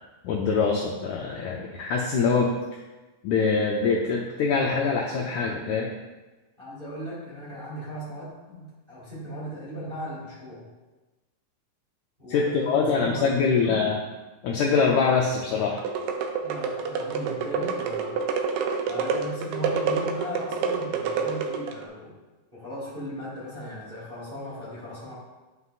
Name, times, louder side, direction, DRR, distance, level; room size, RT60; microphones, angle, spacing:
voice 1, 0.2-2.5 3.2-5.9 12.3-14.0 14.4-15.8, left 5 dB, 80° left, -1 dB, 1.7 m, -24 dB
voice 2, 6.6-10.7 12.2-13.9 16.4-18.2 18.9-22.2 22.5-25.1, equal, 20° right, -8 dB, 1.4 m, -37 dB
sound 1, 15.8-21.8, right 5 dB, 80° right, 1.8 m, -28 dB
9.7 x 5.5 x 2.5 m, 1.2 s
omnidirectional pair, 4.0 m